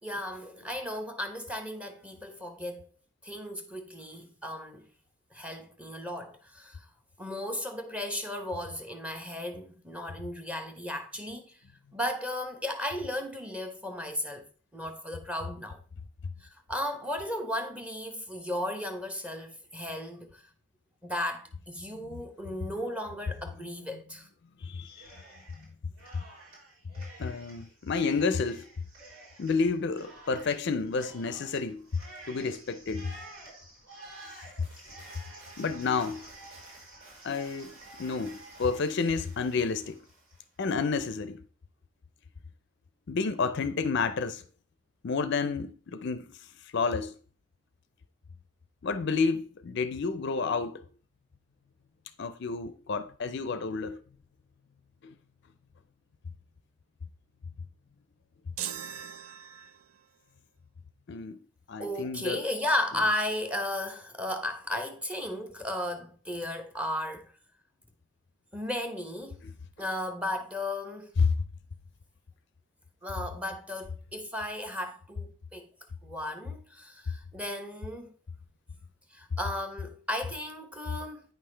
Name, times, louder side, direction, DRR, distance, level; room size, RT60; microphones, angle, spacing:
voice 1, 0.0-2.9 3.2-4.9 5.3-6.9 7.2-11.5 11.9-14.5 14.7-15.8 16.4-20.4 21.0-24.3 61.8-67.3 68.5-69.4 69.8-71.1 73.0-75.7 76.0-78.1 79.1-81.2, left 1 dB, 5° right, 0.8 m, -35 dB
voice 2, 24.6-25.1 27.2-28.7 29.4-32.0 32.3-33.1 35.6-36.2 37.2-37.7 38.0-40.0 40.6-41.4 43.1-44.4 45.0-47.2 48.8-50.9 52.2-54.0 55.0-55.1 61.1-61.4 61.7-62.4 71.2-71.3, left 4 dB, 55° left, 0.4 m, -30 dB
Cheering, 24.8-25.7 26.0-40.4, right 2 dB, 90° right, 3.8 m, -50 dB
sound 1, 58.6-60.1, right 9 dB, 75° right, 0.5 m, -39 dB
9.0 x 5.6 x 3.2 m
head